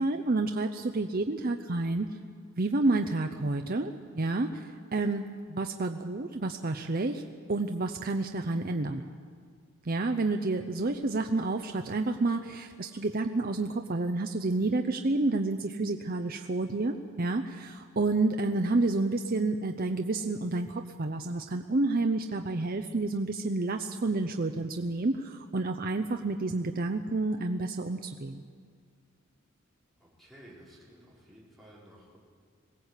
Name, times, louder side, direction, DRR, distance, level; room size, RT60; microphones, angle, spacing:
voice 1, 0.0-2.1 2.6-5.2 5.5-7.2 7.5-9.0 9.8-28.4, right 2 dB, 45° right, 6 dB, 0.7 m, -29 dB
voice 2, 30.0-32.2, equal, ahead, -6 dB, 5.0 m, -54 dB
21.5 x 17.0 x 8.2 m, 2.1 s
head